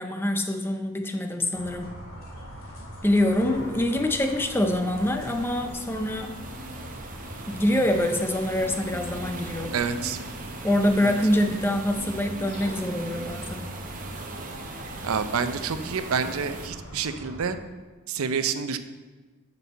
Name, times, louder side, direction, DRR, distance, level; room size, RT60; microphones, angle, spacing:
voice 1, 0.0-1.9 3.0-6.4 7.5-9.7 10.6-13.7, left 1 dB, 10° left, 5 dB, 0.5 m, -25 dB
sound 1, 1.5-17.5, equal, 85° left, 2.0 m, -41 dB
sound 2, 3.3-16.7, right 2 dB, 40° right, 0.7 m, -40 dB
voice 2, 9.7-10.2 11.0-11.1 15.0-17.6 18.1-18.8, right 6 dB, 90° right, 10 dB, 0.6 m, -28 dB
10.0 x 5.4 x 4.2 m, 1.3 s
head